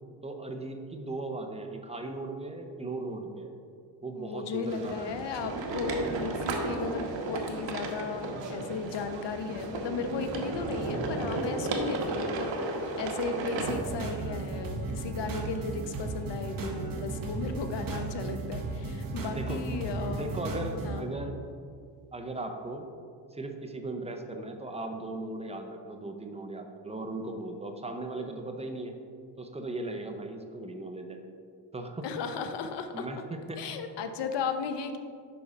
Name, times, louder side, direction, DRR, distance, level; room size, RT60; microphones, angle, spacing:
voice 1, 0.2-3.5 4.0-5.2 19.3-19.7 20.1-21.4 22.1-22.9 23.3-29.0 29.4-31.2 31.7-32.1 32.9-33.6, right 2 dB, 15° right, 5 dB, 0.5 m, -37 dB
voice 2, 4.2-20.3 20.8-21.1 32.0-33.1 33.6-35.0, left 5 dB, 70° left, 8 dB, 0.8 m, -35 dB
sound 1, 4.7-13.7, right 2 dB, 80° right, 1.1 m, -34 dB
sound 2, 13.6-21.0, right 3 dB, 50° right, 1.1 m, -35 dB
6.9 x 5.3 x 4.9 m, 2.2 s
cardioid pair, 145°, 44 cm